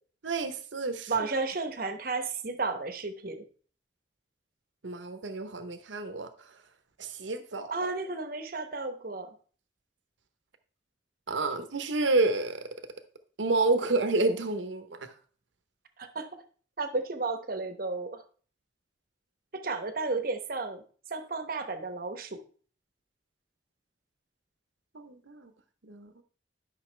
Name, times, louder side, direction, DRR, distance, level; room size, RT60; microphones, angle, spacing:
voice 1, 0.2-1.1 4.8-6.5 7.0-7.7 11.3-12.7 13.4-15.1 24.9-25.5 25.8-26.1, right 3 dB, 85° right, 9 dB, 0.9 m, -29 dB
voice 2, 1.1-3.4 7.7-9.3 16.0-16.3 16.8-18.2 19.5-20.8 21.1-22.4, right 3 dB, 50° right, 8 dB, 1.0 m, -33 dB
11.5 x 5.8 x 3.3 m, 0.43 s
head